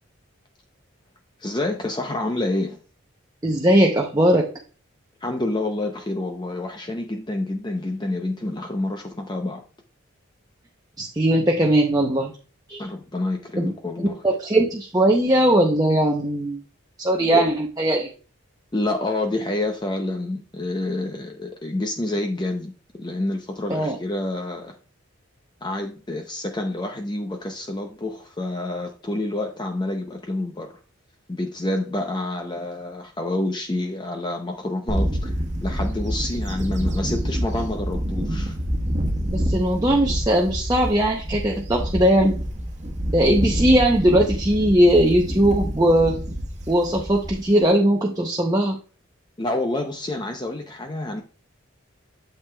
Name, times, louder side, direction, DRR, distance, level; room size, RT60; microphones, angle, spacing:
voice 1, 1.4-2.8 5.2-9.6 12.8-14.2 17.3-17.5 18.7-24.8 25.6-30.7 31.3-38.6 49.4-51.2, left 2 dB, 20° left, 0.5 m, -28 dB
voice 2, 3.4-4.5 11.0-12.3 12.7-12.8 13.6-13.7 14.2-16.6 17.0-18.1 23.7-23.9 39.3-42.3 43.1-46.2 46.7-48.8, right 1 dB, 20° right, 0.7 m, -19 dB
Bird / Wind, 34.9-47.7, equal, 35° right, 1.3 m, -27 dB
8.5 x 6.8 x 2.3 m
head